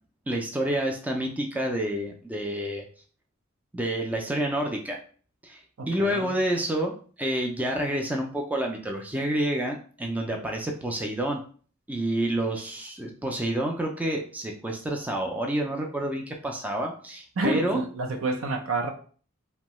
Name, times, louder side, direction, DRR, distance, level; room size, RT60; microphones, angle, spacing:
voice 1, 0.3-2.8 3.7-5.0 5.4-5.6 5.9-11.4 11.9-17.8, right 1 dB, 10° right, 1 dB, 0.3 m, -28 dB
voice 2, 5.8-6.3 17.4-18.9, right 2 dB, 85° right, 4 dB, 0.6 m, -28 dB
2.7 x 2.2 x 3.0 m, 0.42 s
head